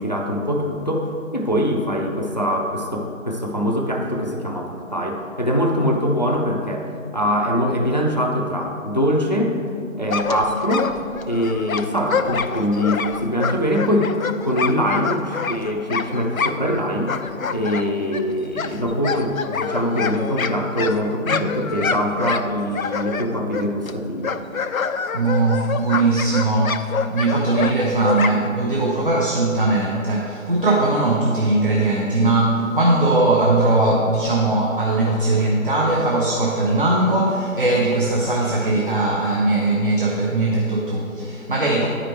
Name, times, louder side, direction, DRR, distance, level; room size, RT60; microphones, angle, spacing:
voice 1, 0.0-6.9 7.1-9.6 10.0-10.9 11.2-14.1 14.4-17.2 17.5-24.4, equal, 35° left, 1 dB, 0.5 m, -23 dB
sound 1, 10.1-16.8 17.1-23.9 24.2-28.5, left 5 dB, 85° left, 0.5 m, -27 dB
voice 2, 25.1-41.9, right 2 dB, 40° right, -2 dB, 0.7 m, -20 dB
9.5 x 5.1 x 4.4 m, 2.6 s
figure-of-eight pair, 155°, 41 cm